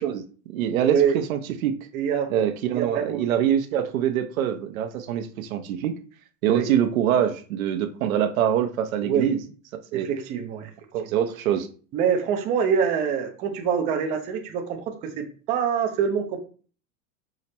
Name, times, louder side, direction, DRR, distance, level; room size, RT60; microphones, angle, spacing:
voice 1, 0.0-1.7 2.3-5.9 6.4-9.4 9.9-10.1 10.9-11.7, right 10 dB, 85° right, 0.7 m, -24 dB
voice 2, 0.8-1.1 1.9-2.3 2.7-3.2 6.5-6.7 9.0-9.3 9.9-10.7 11.1-11.2 11.9-16.4, right 7 dB, 20° right, 0.3 m, -25 dB
4.9 x 2.0 x 4.2 m
supercardioid pair, 140°, 40 cm